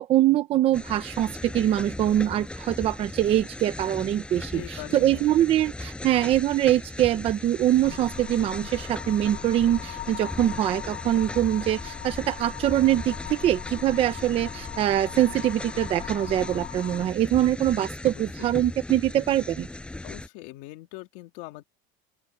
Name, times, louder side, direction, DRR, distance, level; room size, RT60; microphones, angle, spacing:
voice 1, 0.0-4.6 4.9-19.7, right 12 dB, 25° right, 0.8 m, -23 dB
sound 1, 0.7-20.3, left 2 dB, 5° left, 6.5 m, -38 dB
voice 2, 4.5-5.4 18.0-18.2 20.0-21.6, left 19 dB, 60° left, 2.6 m, -42 dB
sound 2, 7.8-17.1, left 15 dB, 40° left, 5.1 m, -40 dB
open air
cardioid pair, 175°, 21 cm